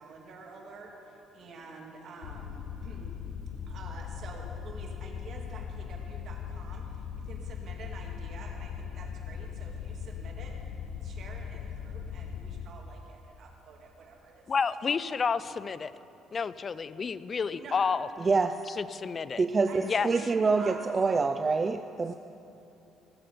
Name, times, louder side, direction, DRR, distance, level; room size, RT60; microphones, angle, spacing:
voice 1, 0.0-3.2 3.7-14.5 14.8-15.0 16.1-16.2 17.5-17.8 19.7-20.8 22.1-22.2, right 4 dB, 55° right, 0 dB, 2.2 m, -48 dB
sound 1, 2.2-12.7, left 7 dB, 80° left, 0.7 m, -39 dB
voice 2, 14.5-15.9 16.3-18.1 18.8-19.4 19.8-20.1, left 5 dB, 35° left, 16 dB, 0.4 m, -30 dB
voice 3, 18.2-18.6 19.4-22.1, right 4 dB, 30° right, 9 dB, 0.4 m, -26 dB
18.5 x 7.5 x 5.2 m, 2.9 s
cardioid pair, 100°, 0 cm